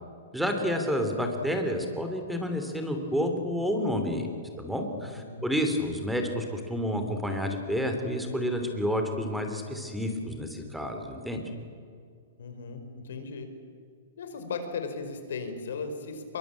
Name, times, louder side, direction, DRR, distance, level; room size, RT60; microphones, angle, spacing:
voice 1, 0.3-4.3 4.6-11.4, equal, ahead, 5 dB, 3.2 m, -29 dB
voice 2, 5.0-5.5 12.4-13.5 14.2-16.4, left 5 dB, 75° left, 7 dB, 5.0 m, -37 dB
25.0 x 23.0 x 8.7 m, 2.2 s
hypercardioid pair, 150°, 0 cm